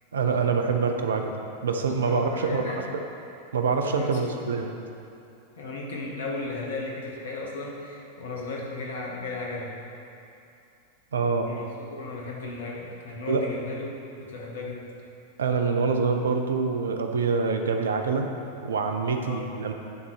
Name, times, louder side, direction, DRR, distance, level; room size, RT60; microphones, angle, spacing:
voice 1, 0.1-1.4 1.6-2.9 3.5-4.7 11.1-11.5 13.3-13.5 15.4-18.3 18.6-19.7, right 4 dB, 65° right, 5 dB, 0.7 m, -25 dB
voice 2, 2.0-2.9 3.9-4.4 5.6-9.7 11.5-13.9 14.3-14.9 19.2-19.5, left 3 dB, 65° left, -2 dB, 1.5 m, -35 dB
9.6 x 4.1 x 6.4 m, 2.7 s
figure-of-eight pair, 90°, 0 cm